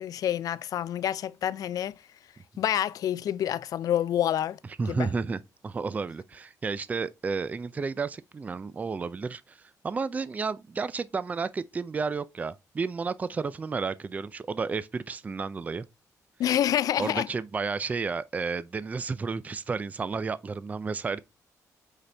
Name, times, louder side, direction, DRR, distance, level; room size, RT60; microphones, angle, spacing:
voice 1, 0.0-1.9 2.6-4.6 4.9-5.1 16.4-17.3, left 11 dB, 65° left, 0.4 m, -27 dB
voice 2, 4.8-15.8 17.0-21.2, right 4 dB, 25° right, 0.4 m, -32 dB
8.0 x 4.1 x 3.3 m
cardioid pair, 125°, 7 cm